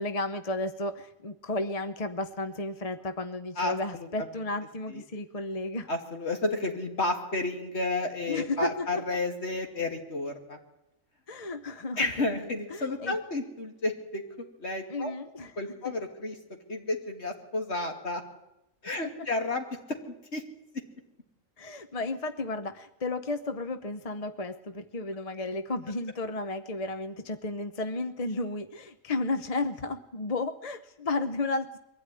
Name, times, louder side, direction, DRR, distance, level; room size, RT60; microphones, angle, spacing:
voice 1, 0.0-5.9 8.3-9.0 11.3-13.2 14.9-15.5 15.8-16.0 19.0-19.3 21.6-31.8, left 2 dB, 30° left, 10 dB, 0.8 m, -33 dB
voice 2, 3.6-4.1 4.9-5.0 5.9-10.6 12.0-14.2 14.6-15.1 15.6-16.4 16.7-18.2 18.8-20.0 20.3-20.4, left 2 dB, 50° left, 4 dB, 2.9 m, -31 dB
23.0 x 15.5 x 9.8 m, 0.88 s
omnidirectional pair, 1.4 m